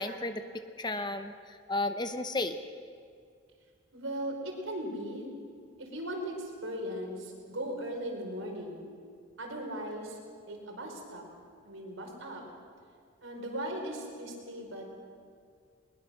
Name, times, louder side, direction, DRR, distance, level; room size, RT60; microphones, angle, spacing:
voice 1, 0.0-2.6, left 2 dB, 20° left, 9 dB, 0.8 m, -34 dB
voice 2, 3.9-5.3 5.8-8.8 9.4-10.2 10.5-11.3 11.6-12.4 13.2-14.9, right 1 dB, 80° right, 1 dB, 4.6 m, -38 dB
21.0 x 21.0 x 6.3 m, 2.2 s
head